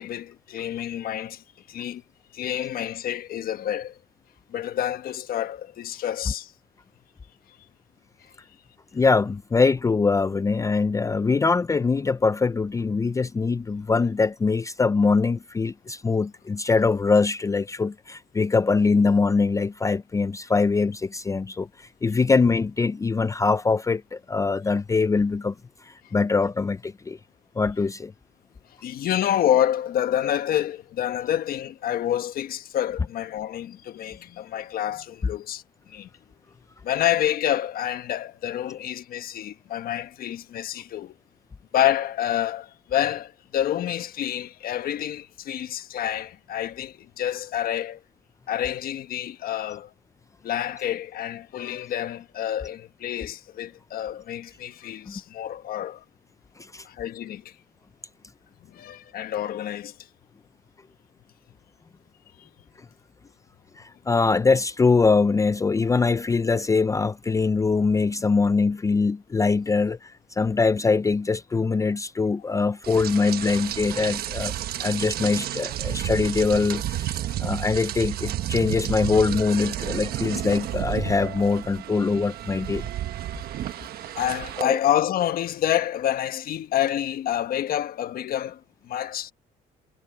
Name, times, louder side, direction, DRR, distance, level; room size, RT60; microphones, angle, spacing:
voice 1, 0.0-1.4 1.7-2.0 2.3-4.0 4.5-6.5 28.8-35.6 35.9-36.1 36.8-41.1 41.7-48.0 48.5-49.9 50.4-56.0 56.8-57.5 58.7-59.9 62.4-62.5 84.2-89.3, left 11 dB, 60° left, 1.4 m, -28 dB
voice 2, 8.9-25.5 25.8-27.2 27.6-28.1 55.1-55.2 56.6-56.8 63.8-74.5 74.8-82.9 84.6-84.8, left 4 dB, 20° left, 0.5 m, -23 dB
Rain, 72.8-84.6, right 12 dB, 65° right, 1.3 m, -31 dB
cardioid pair, 110°, 17 cm